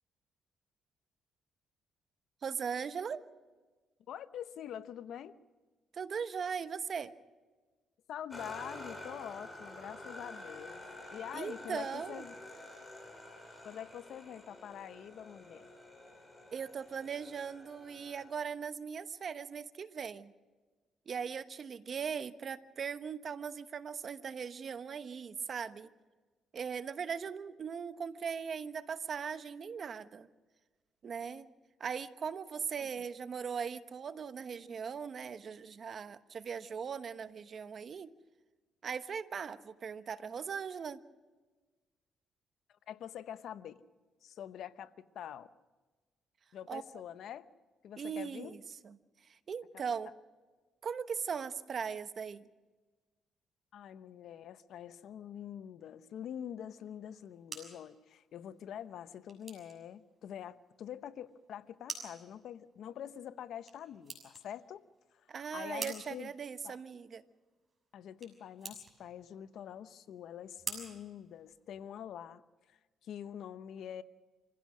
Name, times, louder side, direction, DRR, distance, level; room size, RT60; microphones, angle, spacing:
voice 1, 2.4-3.2 5.9-7.1 11.3-12.2 16.5-20.3 21.1-25.9 26.5-30.3 31.0-31.5 31.8-38.1 38.8-41.0 46.7-46.8 48.0-48.9 49.5-50.1 50.8-52.4 65.3-67.2, right 6 dB, 50° right, 12 dB, 1.0 m, -39 dB
voice 2, 4.1-5.4 8.1-12.4 13.6-15.7 32.8-32.9 42.9-43.8 44.2-45.5 46.5-47.5 47.8-48.6 53.7-64.8 65.5-66.3 66.6-66.8 67.9-72.4 72.7-74.0, left 9 dB, 75° left, 13 dB, 0.8 m, -45 dB
sound 1, 8.3-18.3, left 1 dB, 15° left, 5.0 m, -49 dB
sound 2, 57.0-72.0, right 4 dB, 30° right, 6.7 m, -50 dB
26.5 x 16.0 x 6.3 m, 1.3 s
cardioid pair, 90°, 0 cm